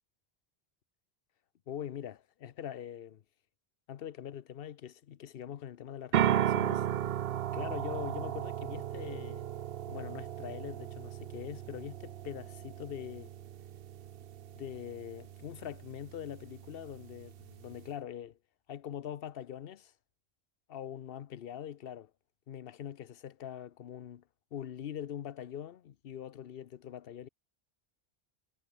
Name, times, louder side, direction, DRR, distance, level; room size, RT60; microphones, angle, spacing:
voice 1, 1.7-3.2 3.9-6.9 7.5-9.4 9.9-13.3 14.5-18.4 18.7-19.9 20.7-22.1 22.5-24.2 24.5-27.3, left 10 dB, 65° left, 0.9 m, -43 dB
sound 1, 6.1-17.9, right 11 dB, 70° right, 0.8 m, -36 dB
omnidirectional pair, 1.1 m